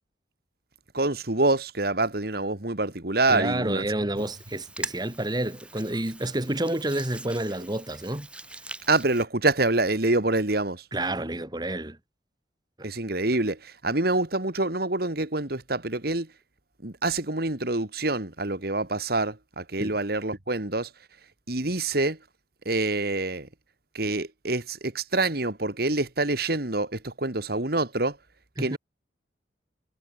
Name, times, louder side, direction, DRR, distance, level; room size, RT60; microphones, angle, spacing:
voice 1, 0.9-3.9 4.2-4.3 8.9-10.8 12.8-16.3 16.8-20.9 21.5-22.2 22.7-23.5 23.9-28.2 28.6-28.8, right 2 dB, 55° right, 2.3 m, -26 dB
voice 2, 3.3-8.3 10.9-12.0 19.8-20.0 28.6-28.8, right 1 dB, 20° right, 1.7 m, -29 dB
Hands, 4.2-9.2, right 2 dB, 5° right, 2.4 m, -42 dB
head